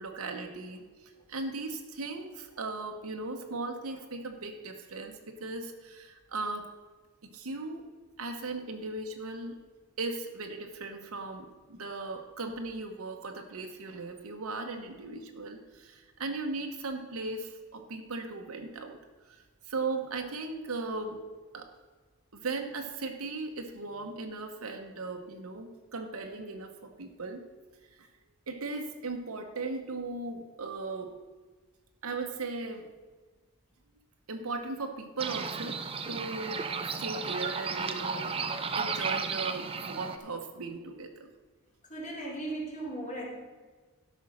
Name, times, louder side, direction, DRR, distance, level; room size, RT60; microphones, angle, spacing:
voice 1, 0.0-6.7 7.3-7.9 8.2-9.6 10.0-19.0 19.2-21.2 21.5-21.7 22.3-27.4 27.9-28.1 28.5-31.1 32.0-32.8 34.3-35.8 36.1-36.6 36.9-38.4 38.7-41.3, right 3 dB, 80° right, 3 dB, 1.0 m, -37 dB
sound 1, 35.2-40.2, right 5 dB, 25° right, 0.5 m, -34 dB
voice 2, 41.9-43.3, right 2 dB, 35° left, -2 dB, 2.5 m, -37 dB
12.5 x 5.5 x 6.3 m, 1.3 s
head